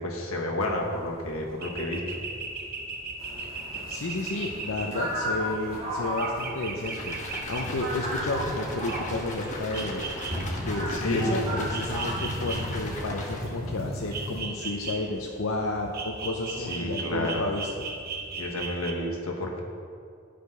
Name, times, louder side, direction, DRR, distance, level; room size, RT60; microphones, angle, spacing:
voice 1, 0.0-2.0 10.9-11.4 16.6-17.4 18.4-19.6, left 1 dB, 90° left, 0 dB, 1.3 m, -30 dB
sound 1, 0.6-18.9, right 4 dB, 45° right, 0.8 m, -39 dB
sound 2, 3.2-14.4, equal, 30° right, 2.2 m, -34 dB
voice 2, 3.9-10.1 10.5-17.7, left 2 dB, 70° left, 0 dB, 0.6 m, -32 dB
sound 3, 6.8-13.7, left 2 dB, 35° left, 1.1 m, -38 dB
9.9 x 5.1 x 5.5 m, 2.3 s
head